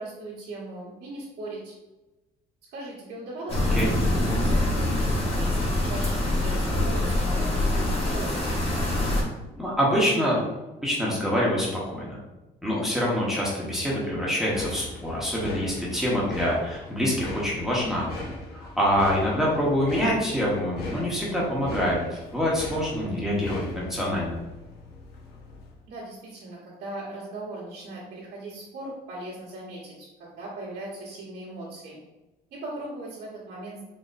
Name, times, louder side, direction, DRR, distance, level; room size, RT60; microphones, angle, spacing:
voice 1, 0.0-1.7 2.7-8.3 25.9-32.0 32.5-33.8, right 2 dB, 75° right, -9 dB, 1.3 m, -39 dB
sound 1, 3.5-9.2, left 1 dB, 35° left, 1.0 m, -24 dB
voice 2, 9.6-10.4 10.8-12.2 12.6-18.1 18.5-24.4, equal, ahead, -5 dB, 0.9 m, -25 dB
sound 2, 14.5-25.8, left 2 dB, 70° left, 0.7 m, -39 dB
4.0 x 2.8 x 2.5 m, 1.1 s
cardioid pair, 110°, 17 cm